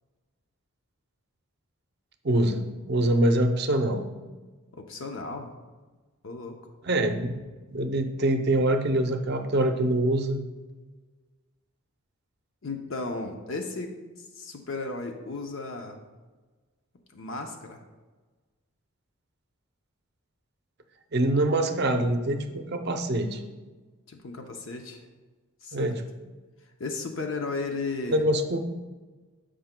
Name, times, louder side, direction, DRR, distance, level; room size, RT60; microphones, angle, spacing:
voice 1, 2.2-4.0 6.8-7.3 7.7-10.4 21.1-23.4 25.7-26.0 28.1-28.6, right 1 dB, 50° right, 6 dB, 0.6 m, -24 dB
voice 2, 4.7-5.5 6.2-6.6 9.1-9.2 12.6-16.0 17.1-17.8 24.1-25.0 25.6-25.9 26.8-28.3, left 3 dB, 65° left, 4 dB, 0.7 m, -35 dB
13.5 x 5.0 x 2.2 m, 1.3 s
head